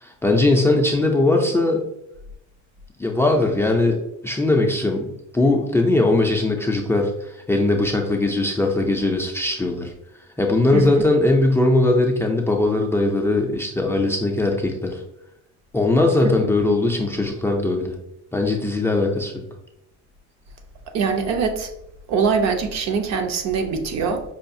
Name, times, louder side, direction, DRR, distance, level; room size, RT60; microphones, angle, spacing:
voice 1, 0.0-1.8 3.0-4.0 4.2-9.9 10.4-15.0 15.7-18.0 18.3-19.4, left 2 dB, 10° left, 2 dB, 0.3 m, -20 dB
voice 2, 10.7-11.0 16.2-16.3 20.9-21.7 22.1-24.2, right 5 dB, 60° right, 5 dB, 0.6 m, -23 dB
5.5 x 2.3 x 2.6 m, 0.81 s
cardioid pair, 130°, 30 cm